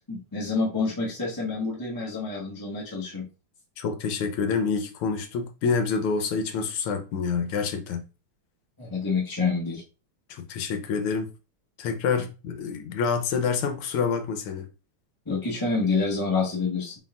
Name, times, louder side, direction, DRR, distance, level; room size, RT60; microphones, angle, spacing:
voice 1, 0.1-3.3 8.8-9.8 15.2-16.9, left 4 dB, 15° left, 0.8 m, -27 dB
voice 2, 3.8-8.0 10.3-11.3 11.8-14.7, left 5 dB, 80° left, 1.5 m, -27 dB
4.1 x 3.9 x 2.4 m
omnidirectional pair, 2.4 m